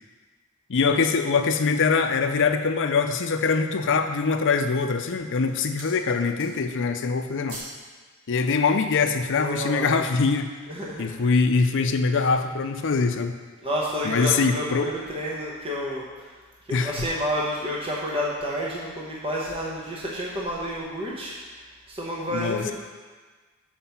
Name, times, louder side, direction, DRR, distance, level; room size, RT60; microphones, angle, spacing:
voice 1, 0.7-7.6 8.3-10.5 11.0-13.4 14.0-14.9 16.7-16.9 22.3-22.7, left 4 dB, 55° left, 7 dB, 0.5 m, -23 dB
sound 1, 1.3-2.1 2.7-2.8 3.3-3.8 4.5-4.9 5.2-6.0 6.3-6.8 7.1-7.8 8.2-8.3, right 1 dB, 70° right, 1.9 m, -44 dB
voice 2, 9.4-10.0 10.7-11.1 13.6-16.3 16.7-21.3 21.9-22.7, equal, 25° right, -5 dB, 1.0 m, -30 dB
7.4 x 4.8 x 5.8 m, 1.4 s
head